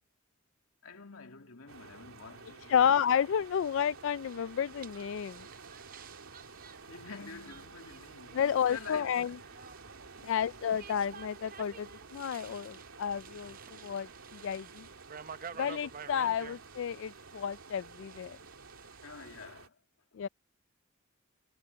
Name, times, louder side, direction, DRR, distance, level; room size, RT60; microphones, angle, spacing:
voice 1, 0.8-2.9 6.9-9.4 10.1-10.3 15.4-15.5 16.2-16.4 17.7-17.8 19.0-19.8, left 4 dB, 85° left, 2.6 m, -48 dB
sound 1, 1.7-19.7, right 4 dB, 90° right, 3.2 m, -52 dB
voice 2, 2.7-5.5 8.3-9.3 10.2-14.1 14.3-14.9 15.6-18.4 20.2-20.3, left 8 dB, 65° left, 0.3 m, -31 dB
sound 2, 3.4-19.5, right 7 dB, 45° right, 0.7 m, -52 dB
head